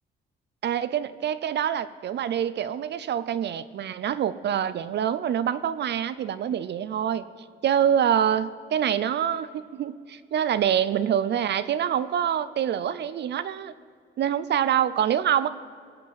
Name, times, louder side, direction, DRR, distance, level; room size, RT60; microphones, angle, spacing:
voice 1, 0.6-7.2 7.6-13.7 14.2-15.5, right 9 dB, 60° right, 14 dB, 0.6 m, -25 dB
21.0 x 7.5 x 7.7 m, 2.2 s
cardioid pair, 90°, 20 cm